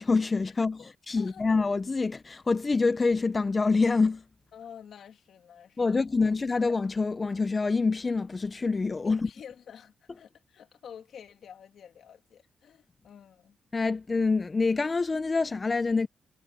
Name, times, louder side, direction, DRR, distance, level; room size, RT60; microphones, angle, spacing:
voice 1, 0.0-4.2 5.8-9.3 13.7-16.1, left 4 dB, 30° left, 0.6 m, -26 dB
voice 2, 1.1-1.4 4.5-6.0 9.0-13.6, left 8 dB, 70° left, 2.2 m, -49 dB
cardioid pair, 100°, 0 cm